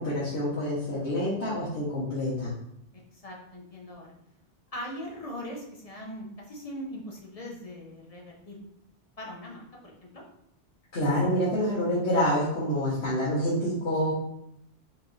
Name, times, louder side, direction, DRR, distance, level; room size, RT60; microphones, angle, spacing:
voice 1, 0.0-2.5 10.9-14.1, equal, 75° left, -8 dB, 1.5 m, -27 dB
voice 2, 3.1-4.1 4.7-8.6 9.2-10.2, equal, 35° left, -1 dB, 0.8 m, -40 dB
4.6 x 3.5 x 3.2 m, 0.77 s
omnidirectional pair, 1.1 m